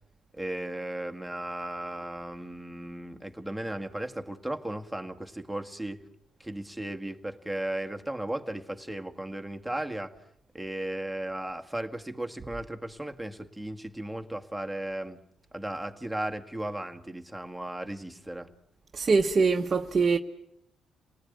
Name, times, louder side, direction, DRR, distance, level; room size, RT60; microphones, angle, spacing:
voice 1, 0.3-6.0 6.4-10.2 10.5-15.2 15.5-18.5, right 1 dB, 5° right, 1.8 m, -36 dB
voice 2, 18.9-20.2, right 4 dB, 40° right, 1.2 m, -23 dB
28.5 x 19.0 x 9.3 m
cardioid pair, 90°, 0 cm